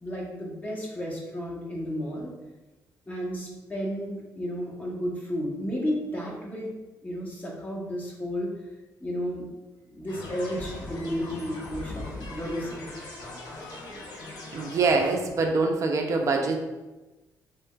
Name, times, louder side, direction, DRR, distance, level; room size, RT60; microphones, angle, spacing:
voice 1, 0.0-2.3 3.1-6.7 7.0-8.5 9.0-9.5 9.9-12.8, equal, 25° left, -4 dB, 1.0 m, -32 dB
sound 1, 10.1-15.2, left 2 dB, 75° left, 0.7 m, -40 dB
voice 2, 14.5-16.6, right 3 dB, 50° right, 2 dB, 0.5 m, -24 dB
3.3 x 2.8 x 2.3 m, 1.1 s
cardioid pair, 80°, 7 cm